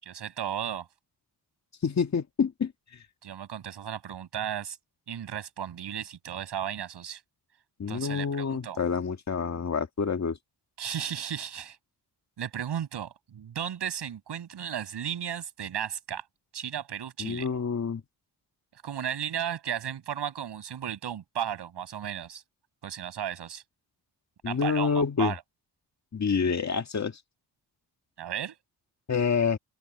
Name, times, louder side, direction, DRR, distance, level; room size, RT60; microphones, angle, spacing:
voice 1, 0.1-0.9 3.2-4.8 5.1-7.2 7.9-8.8 10.8-11.8 12.4-16.2 16.5-17.5 18.8-22.4 22.8-23.6 24.4-25.4 28.2-28.6, right 9 dB, 80° right, 8.0 m, -34 dB
voice 2, 1.8-2.7 7.8-10.4 17.2-18.0 24.4-25.4 26.1-27.2 29.1-29.6, left 6 dB, 40° left, 2.0 m, -27 dB
cardioid pair, 100°, 40 cm